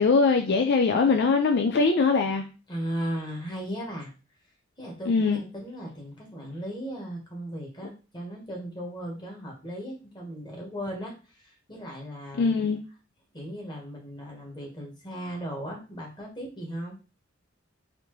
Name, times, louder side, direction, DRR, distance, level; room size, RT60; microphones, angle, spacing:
voice 1, 0.0-2.4 5.1-5.4 12.4-12.8, left 4 dB, 55° left, 5 dB, 0.4 m, -22 dB
voice 2, 2.7-4.1 4.8-12.6 13.3-17.0, equal, 20° left, -1 dB, 1.3 m, -37 dB
4.1 x 2.7 x 3.1 m, 0.32 s
head